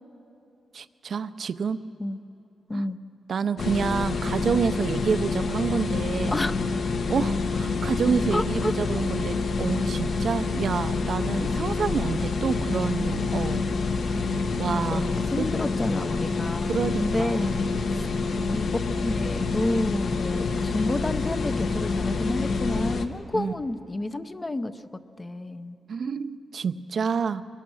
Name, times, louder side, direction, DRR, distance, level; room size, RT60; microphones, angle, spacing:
voice 1, 0.7-1.8 2.7-2.8 3.3-6.4 7.1-13.6 14.6-15.0 15.4-15.5 16.7-17.6 23.3-23.5 25.9-27.4, right 6 dB, 55° right, 11 dB, 0.5 m, -28 dB
sound 1, 3.6-23.1, left 4 dB, 60° left, 1.1 m, -27 dB
voice 2, 8.3-8.7 10.9-11.2 14.9-16.7 17.0-17.6 17.9-18.1 18.5-24.8 25.2-25.8, left 2 dB, 20° left, 11 dB, 0.6 m, -30 dB
24.0 x 20.0 x 6.3 m, 2.8 s
wide cardioid pair, 130°, 0 cm